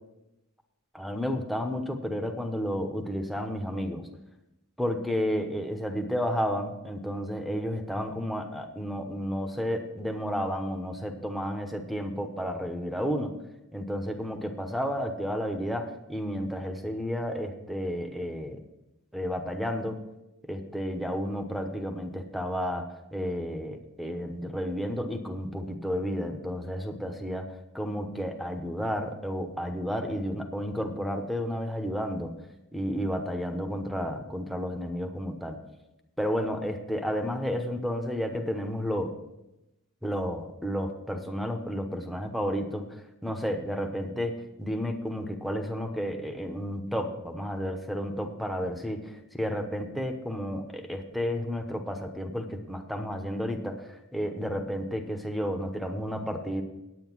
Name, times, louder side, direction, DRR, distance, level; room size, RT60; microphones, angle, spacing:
voice 1, 0.9-4.1 4.8-13.3 13.7-18.6 19.1-20.0 20.5-32.3 32.7-35.6 36.2-39.1 40.0-42.8 43.2-56.6, equal, ahead, 6 dB, 0.9 m, -32 dB
9.2 x 9.0 x 6.0 m, 0.94 s
head